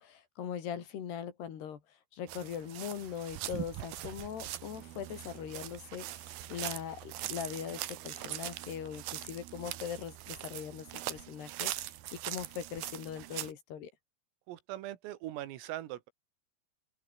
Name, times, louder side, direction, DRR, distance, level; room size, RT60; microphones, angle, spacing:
voice 1, 0.0-11.7 12.1-13.9, left 8 dB, 60° left, 4.3 m, -41 dB
sound 1, 2.3-13.5, right 14 dB, 75° right, 2.2 m, -42 dB
voice 2, 14.5-16.1, right 14 dB, 90° right, 4.3 m, -41 dB
open air
omnidirectional pair, 5.8 m